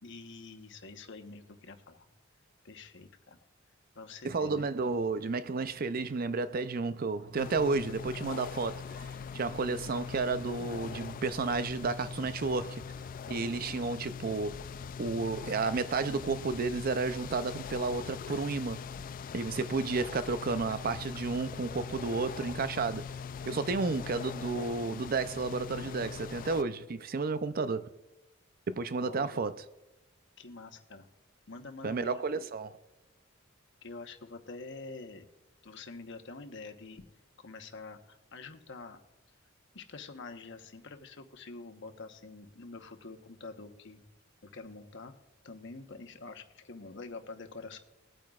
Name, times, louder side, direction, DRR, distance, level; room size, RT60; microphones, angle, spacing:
voice 1, 0.0-2.1 2.6-3.4 3.9-4.7 29.0-29.4 30.4-31.1 31.5-32.5 33.8-35.3 35.6-37.0 37.4-39.0 39.7-44.0 44.4-45.1 45.4-47.8, left 3 dB, 60° left, 1.1 m, -46 dB
voice 2, 4.2-9.1 9.3-12.8 13.3-14.6 15.0-18.8 19.3-23.0 23.5-27.9 28.7-29.5 31.8-32.7, right 4 dB, 45° right, 0.5 m, -32 dB
sound 1, 7.4-26.6, left 6 dB, 45° left, 0.3 m, -41 dB
21.0 x 8.9 x 2.4 m
head